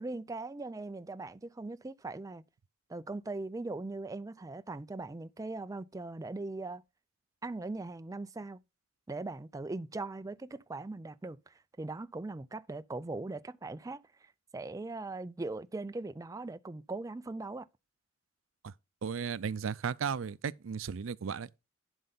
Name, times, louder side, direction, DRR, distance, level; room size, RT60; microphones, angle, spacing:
voice 1, 0.0-2.4 2.9-6.8 7.4-8.6 9.1-17.7, right 2 dB, 15° right, 0.4 m, -40 dB
voice 2, 19.0-21.5, right 6 dB, 85° right, 0.5 m, -35 dB
11.5 x 5.4 x 4.0 m
head